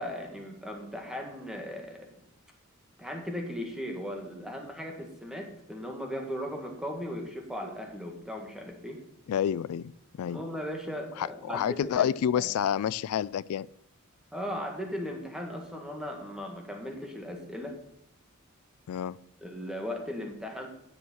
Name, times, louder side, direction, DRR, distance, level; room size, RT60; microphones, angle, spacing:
voice 1, 0.0-2.1 3.0-9.0 10.2-12.1 12.4-12.5 14.3-17.8 19.4-20.7, equal, 5° right, 1.7 m, -37 dB
voice 2, 9.3-9.9 10.2-10.4 11.2-13.7 18.9-19.2, left 9 dB, 90° left, 0.3 m, -29 dB
9.9 x 6.4 x 6.2 m
head